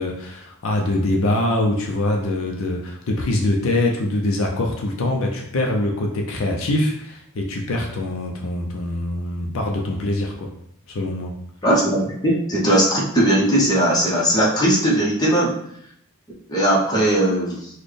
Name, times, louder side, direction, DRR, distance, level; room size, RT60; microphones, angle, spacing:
voice 1, 0.0-10.5 10.9-11.3, left 1 dB, 70° left, 1 dB, 0.5 m, -23 dB
voice 2, 11.6-15.5 16.5-17.7, right 1 dB, 20° left, -5 dB, 0.8 m, -19 dB
4.0 x 2.2 x 3.2 m, 0.73 s
head